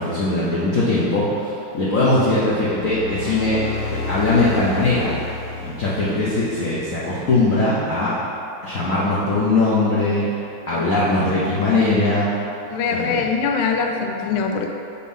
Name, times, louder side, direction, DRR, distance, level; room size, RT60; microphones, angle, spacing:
voice 1, 0.0-3.6 3.9-5.1 5.6-8.2 8.6-10.3 10.7-12.3 12.9-13.2, left 2 dB, 50° left, -8 dB, 1.0 m, -20 dB
sound 1, 2.4-7.0, left 4 dB, 70° left, 0.7 m, -31 dB
voice 2, 12.7-14.7, left 5 dB, 90° left, 3 dB, 1.6 m, -22 dB
8.5 x 3.1 x 5.4 m, 2.8 s
omnidirectional pair, 2.3 m